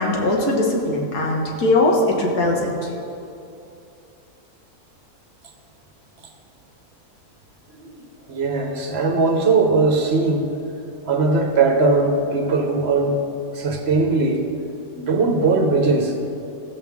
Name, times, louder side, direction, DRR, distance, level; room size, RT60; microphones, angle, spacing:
voice 1, 0.0-2.9, left 2 dB, 85° left, -1 dB, 1.9 m, -20 dB
voice 2, 8.3-10.5 11.1-13.1 13.6-14.4 15.0-16.1, right 3 dB, 50° right, 4 dB, 1.0 m, -19 dB
15.0 x 7.5 x 3.6 m, 2.7 s
omnidirectional pair, 1.7 m